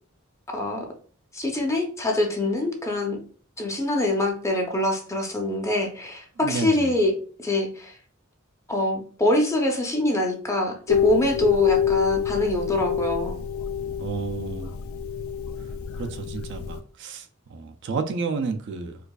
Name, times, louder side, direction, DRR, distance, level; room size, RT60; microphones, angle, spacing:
voice 1, 0.5-0.8 1.3-3.2 3.6-7.1 7.4-7.9 8.7-13.4, left 1 dB, 15° left, 0.6 m, -24 dB
voice 2, 6.4-6.9 14.0-14.7 16.0-19.0, right 4 dB, 55° right, 0.4 m, -31 dB
sound 1, 10.9-16.8, left 8 dB, 65° left, 0.4 m, -27 dB
4.6 x 2.4 x 2.3 m
head